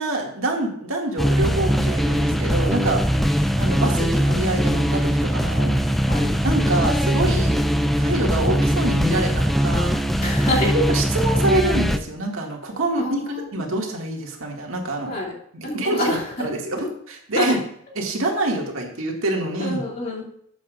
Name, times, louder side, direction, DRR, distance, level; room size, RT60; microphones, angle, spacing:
voice 1, 0.0-3.0 3.6-5.8 6.4-9.9 10.7-15.1 15.5-17.6 18.0-19.8, right 2 dB, 80° right, 0 dB, 2.1 m, -26 dB
sound 1, 1.2-12.0, equal, ahead, 0.4 m, -21 dB
voice 2, 3.1-3.8 6.1-6.3 10.2-10.7 13.0-13.4 15.1-15.3 15.6-16.5 16.8-16.9 17.3-17.6 19.6-20.3, left 1 dB, 40° left, -4 dB, 2.6 m, -27 dB
13.0 x 8.3 x 2.5 m, 0.70 s
head